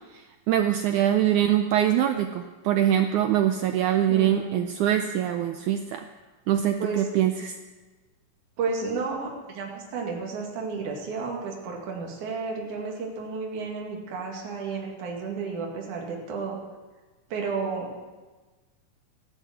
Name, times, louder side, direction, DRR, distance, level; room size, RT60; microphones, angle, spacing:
voice 1, 0.1-6.0 6.5-7.5, right 11 dB, 80° right, 7 dB, 1.7 m, -23 dB
voice 2, 4.1-4.6 6.8-7.0 8.6-16.6 17.3-18.0, right 4 dB, 60° right, -1 dB, 3.6 m, -32 dB
14.0 x 11.5 x 7.8 m, 1.3 s
omnidirectional pair, 4.2 m